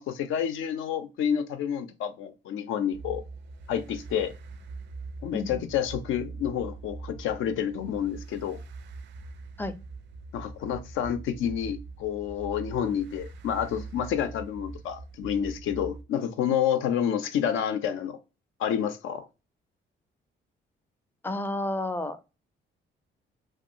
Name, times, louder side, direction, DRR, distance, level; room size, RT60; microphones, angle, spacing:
voice 1, 0.0-3.2 3.7-4.3 5.2-8.6 10.3-18.2 18.6-19.2, left 9 dB, 80° left, 0.5 m, -29 dB
sound 1, 2.9-16.0, right 3 dB, 65° right, 0.4 m, -42 dB
voice 2, 5.3-5.7 9.6-9.8 21.2-22.2, left 2 dB, 10° left, 0.4 m, -31 dB
2.6 x 2.4 x 2.7 m
cardioid pair, 90°, 20 cm